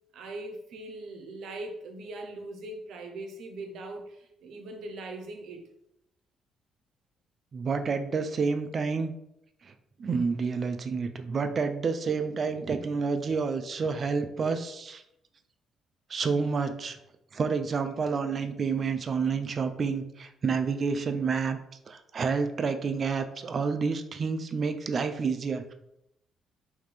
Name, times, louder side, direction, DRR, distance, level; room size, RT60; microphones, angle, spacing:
voice 1, 0.1-5.6, right 2 dB, 75° right, 3 dB, 0.7 m, -40 dB
voice 2, 7.5-9.1 9.6-9.7 10.0-15.0 16.1-17.0 17.3-21.6 21.9-25.7, right 5 dB, 45° right, 8 dB, 0.3 m, -29 dB
3.6 x 2.7 x 3.2 m, 0.80 s
cardioid pair, 90°, 0 cm